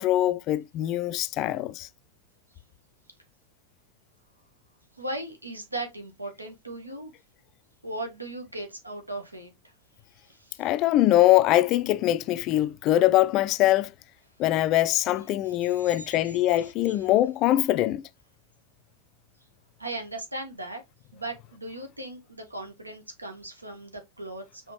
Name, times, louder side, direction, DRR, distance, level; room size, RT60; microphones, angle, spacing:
voice 1, 0.0-1.9 10.6-13.9 14.4-18.0, left 14 dB, 40° left, 0.4 m, -23 dB
voice 2, 5.0-7.1 7.8-9.5 10.2-10.7 15.4-17.0 19.8-20.8 21.1-24.7, right 2 dB, 85° right, 1.1 m, -38 dB
4.9 x 3.6 x 2.9 m
figure-of-eight pair, 90°, 0 cm